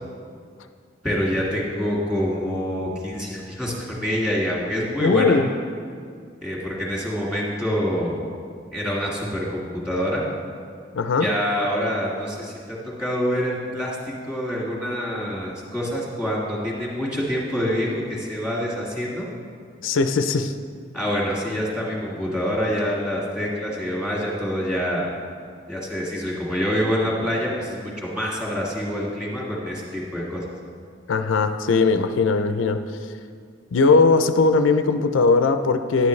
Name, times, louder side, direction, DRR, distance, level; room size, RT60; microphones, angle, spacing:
voice 1, 1.0-5.4 6.4-8.2 8.7-10.2 11.2-19.3 20.9-25.1 25.7-30.5, equal, 5° right, -5 dB, 1.9 m, -26 dB
voice 2, 5.0-5.5 10.9-11.3 19.8-20.5 31.1-32.8 33.7-36.1, left 4 dB, 85° left, 9 dB, 0.4 m, -19 dB
11.0 x 9.4 x 3.2 m, 2.1 s
head